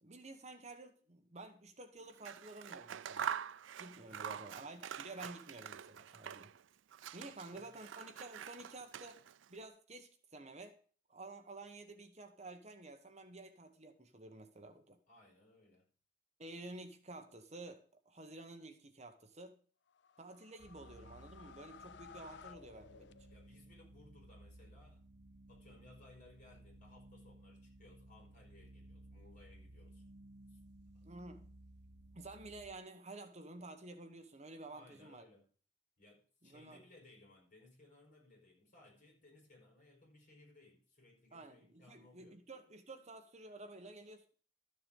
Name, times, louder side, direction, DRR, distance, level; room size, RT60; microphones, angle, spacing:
voice 1, 0.0-3.3 3.8-6.5 7.1-9.2 9.5-10.8 11.1-15.0 16.4-19.6 20.2-23.2 31.0-31.5 32.1-35.2 36.4-36.8 41.3-44.3, right 2 dB, 35° right, 1.2 m, -51 dB
Scissors, 2.1-6.6 6.9-9.5, right 8 dB, 85° right, 0.4 m, -45 dB
voice 2, 3.9-4.4 7.2-7.7 15.1-15.9 23.3-25.0 25.5-30.0 30.5-30.6 30.9-31.0 34.7-35.5 36.0-42.4, left 2 dB, 45° left, 5.4 m, -62 dB
sound 1, 19.9-23.7, left 6 dB, 65° left, 0.5 m, -57 dB
sound 2, 20.6-32.8, right 1 dB, 60° right, 0.8 m, -58 dB
13.0 x 6.9 x 5.3 m
head